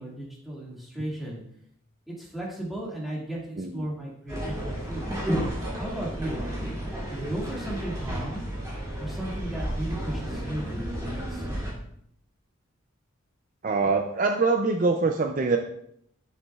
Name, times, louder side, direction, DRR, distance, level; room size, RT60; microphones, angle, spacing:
voice 1, 0.0-1.4 2.1-5.2 5.7-6.4 7.1-8.4 9.0-11.5, right 1 dB, ahead, -5 dB, 2.0 m, -35 dB
sound 1, 4.3-11.7, equal, 15° right, 2.4 m, -32 dB
voice 2, 13.6-15.6, right 4 dB, 40° right, 4 dB, 0.4 m, -24 dB
10.0 x 6.8 x 2.4 m, 0.70 s
head